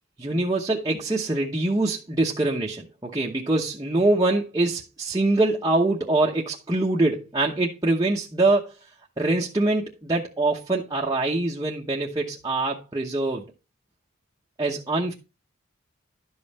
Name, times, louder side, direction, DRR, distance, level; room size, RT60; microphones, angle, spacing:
voice 1, 0.2-8.7 9.2-13.4 14.6-15.1, right 2 dB, 15° right, 0.9 m, -24 dB
11.5 x 5.4 x 4.2 m
head